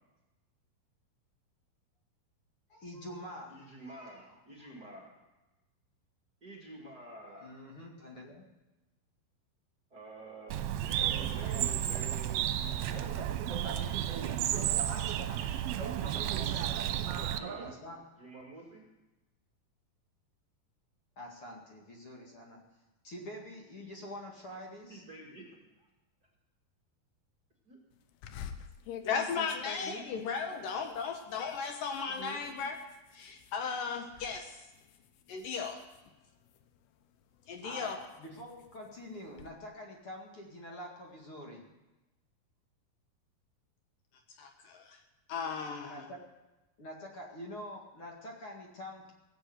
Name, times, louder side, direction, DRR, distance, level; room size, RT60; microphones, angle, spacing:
voice 1, 2.7-4.7 7.4-8.4 17.6-18.0 21.2-22.6 23.0-25.0 37.6-41.6 45.8-46.2 46.8-49.1, left 1 dB, 40° left, 0 dB, 2.4 m, -46 dB
voice 2, 3.5-5.2 6.4-7.5 9.9-14.1 14.5-15.0 16.0-16.7 17.1-18.8 24.9-25.9 27.6-27.8 29.8-30.0 32.1-32.4, right 2 dB, 30° right, -2 dB, 2.1 m, -49 dB
Bird, 10.5-17.4, right 11 dB, 80° right, 2.6 m, -32 dB
sound 1, 12.6-17.7, right 6 dB, 65° right, 3.1 m, -41 dB
sound 2, 28.2-33.6 34.0-34.4 34.7-36.8 37.3-39.5, left 8 dB, 85° left, 2.8 m, -48 dB
voice 3, 29.1-32.8 33.1-34.6 35.3-35.8 37.5-38.0 44.4-45.0 45.3-46.1, left 5 dB, 70° left, 4 dB, 2.6 m, -36 dB
16.5 x 10.5 x 7.9 m, 1.1 s
omnidirectional pair, 4.4 m